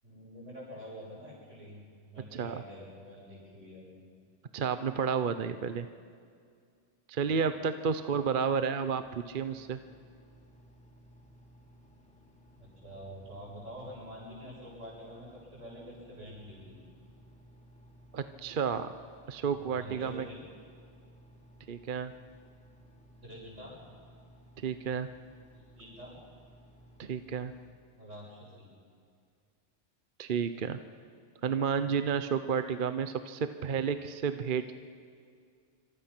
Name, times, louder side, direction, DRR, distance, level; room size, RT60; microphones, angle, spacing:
voice 1, 0.0-3.9 12.6-16.8 19.5-20.4 23.2-23.8 25.8-26.2 28.0-28.7, equal, 85° right, -5 dB, 8.3 m, -47 dB
voice 2, 2.3-2.6 4.5-5.9 7.1-9.8 18.1-18.9 19.3-20.2 21.7-22.1 24.6-25.1 27.0-27.5 30.2-30.8 31.4-34.7, right 6 dB, 50° right, 10 dB, 0.9 m, -31 dB
Engine, 8.8-27.7, right 1 dB, 5° left, 3.3 m, -57 dB
27.5 x 25.0 x 6.0 m, 2.2 s
omnidirectional pair, 1.2 m